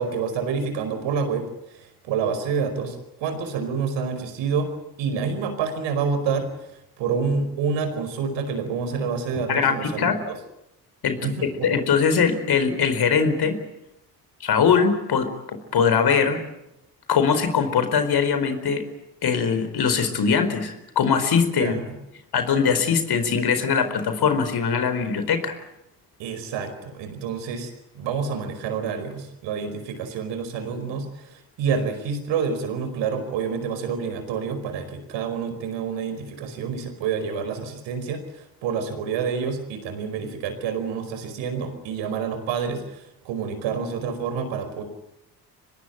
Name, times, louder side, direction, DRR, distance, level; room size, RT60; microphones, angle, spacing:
voice 1, 0.0-4.7 5.0-10.4 11.2-11.8 21.6-21.9 26.2-44.8, right 6 dB, 70° right, 8 dB, 5.0 m, -28 dB
voice 2, 9.5-10.2 11.0-11.3 11.6-13.6 14.4-16.4 17.1-18.8 19.2-21.7 22.3-25.5, left 6 dB, 55° left, 9 dB, 4.6 m, -21 dB
24.5 x 21.0 x 9.0 m, 0.84 s
hypercardioid pair, 50°, 47 cm